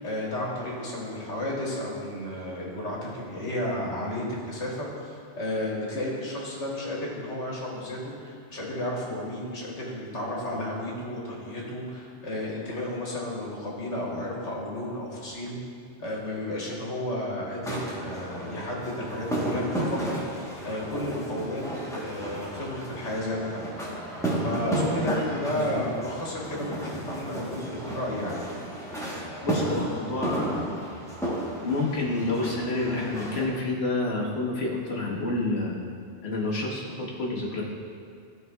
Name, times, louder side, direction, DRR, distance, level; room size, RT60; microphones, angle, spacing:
voice 1, 0.0-15.6 16.0-21.6 21.9-23.8 24.4-28.4, left 1 dB, 85° left, -4 dB, 1.6 m, -32 dB
sound 1, 17.6-33.5, right 1 dB, 5° left, 0.9 m, -33 dB
voice 2, 25.3-25.9 29.4-30.7 31.6-35.7 36.2-37.6, left 2 dB, 65° left, -3 dB, 1.3 m, -29 dB
13.0 x 4.4 x 2.3 m, 2.3 s
omnidirectional pair, 1.2 m